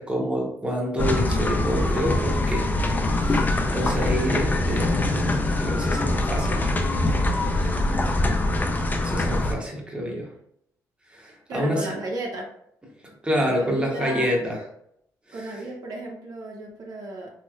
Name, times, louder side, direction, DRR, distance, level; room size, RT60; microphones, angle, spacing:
voice 1, 0.0-2.7 3.1-6.6 7.4-7.7 9.0-10.3 11.1-11.9 13.2-14.6 15.3-15.5, equal, 15° right, -1 dB, 0.9 m, -27 dB
sound 1, 1.0-9.5, left 2 dB, 25° left, 0.5 m, -23 dB
voice 2, 11.5-12.5 13.4-14.3 15.3-17.3, right 1 dB, 60° right, -1 dB, 0.8 m, -34 dB
3.0 x 3.0 x 2.3 m, 0.73 s
cardioid pair, 75°, 7 cm